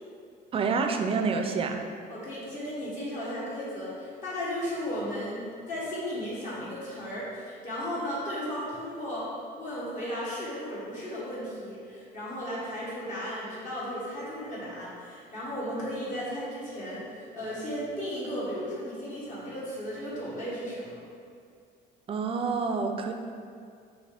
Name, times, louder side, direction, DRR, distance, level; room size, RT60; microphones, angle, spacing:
voice 1, 0.5-1.8 22.1-23.1, right 4 dB, 35° right, 5 dB, 0.4 m, -28 dB
voice 2, 2.1-9.3 9.6-21.0, equal, 50° left, -8 dB, 1.5 m, -35 dB
5.9 x 2.6 x 3.4 m, 2.3 s
cardioid pair, 110°, 17 cm